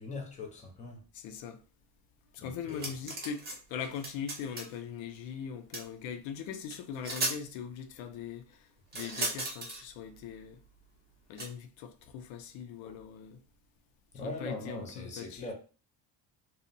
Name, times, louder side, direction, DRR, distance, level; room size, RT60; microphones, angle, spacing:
voice 1, 0.0-1.0 2.4-2.9 12.8-13.0 14.1-15.5, left 2 dB, 15° left, 0.5 m, -41 dB
voice 2, 1.1-1.6 2.3-10.6 11.3-13.4 14.2-15.5, left 7 dB, 80° left, 0.5 m, -41 dB
sound 1, 2.7-3.6 3.8-4.7 5.7-5.8 6.7-6.8 7.0-7.4 8.9-9.8 11.4-11.5, right 2 dB, 20° right, 0.8 m, -35 dB
2.7 x 2.0 x 2.6 m
cardioid pair, 135°, 45 cm